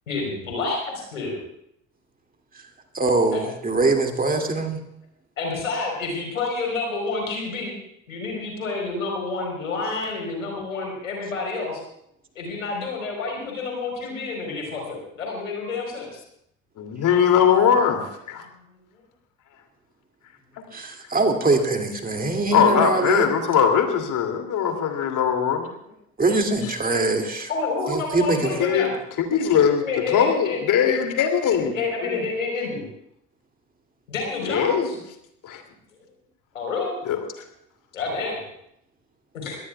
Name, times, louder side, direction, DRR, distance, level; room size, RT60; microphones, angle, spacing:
voice 1, 0.1-1.4 3.3-3.4 5.4-7.8 8.1-11.8 12.3-16.2 18.9-19.0 27.5-28.9 29.8-30.6 31.6-32.8 34.1-34.9 36.5-36.9 37.9-38.4 39.3-39.6, left 3 dB, 85° left, 1 dB, 4.2 m, -29 dB
voice 2, 2.5-4.8 20.7-23.3 26.2-27.5 27.9-28.6, right 2 dB, 20° right, 3 dB, 2.5 m, -23 dB
voice 3, 16.8-18.4 22.5-25.7 28.6-28.9 29.3-31.7 32.0-32.2 34.5-34.9 35.4-35.6 37.0-37.2, left 7 dB, 50° left, 5 dB, 2.8 m, -21 dB
22.5 x 17.5 x 2.3 m, 0.76 s
figure-of-eight pair, 60°, 39 cm